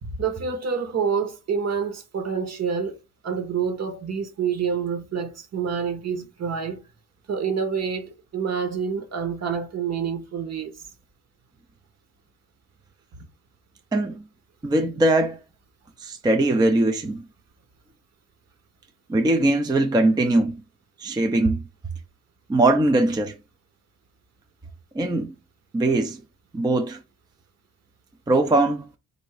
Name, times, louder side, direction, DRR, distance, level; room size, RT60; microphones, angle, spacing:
voice 1, 0.0-3.0 3.2-6.8 7.3-10.7, right 6 dB, 50° right, 1.1 m, -27 dB
voice 2, 13.9-14.3 14.6-15.4 16.0-17.2 19.1-20.6 21.0-21.6 22.5-23.3 25.0-25.3 25.7-26.2 26.5-27.0 28.3-28.9, right 2 dB, 10° right, 0.4 m, -21 dB
3.8 x 2.7 x 4.6 m
cardioid pair, 115°, 34 cm